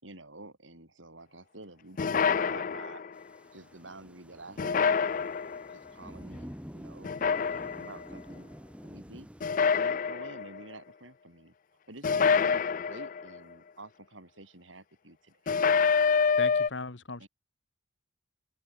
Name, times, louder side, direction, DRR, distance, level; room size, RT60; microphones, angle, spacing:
voice 1, 0.0-3.0 3.5-5.0 5.5-7.1 7.5-8.5 8.8-9.3 9.7-11.5 11.9-15.4 17.2-17.3, right 2 dB, 90° right, 7.8 m, -49 dB
sound 1, 2.0-3.2 4.6-5.7 7.0-8.0 9.4-10.6 12.0-13.4 15.5-16.7, left 5 dB, 45° left, 0.4 m, -27 dB
Thunder / Rain, 3.1-9.6, equal, 5° right, 3.6 m, -48 dB
voice 2, 16.4-17.3, left 3 dB, 70° left, 1.4 m, -37 dB
open air
head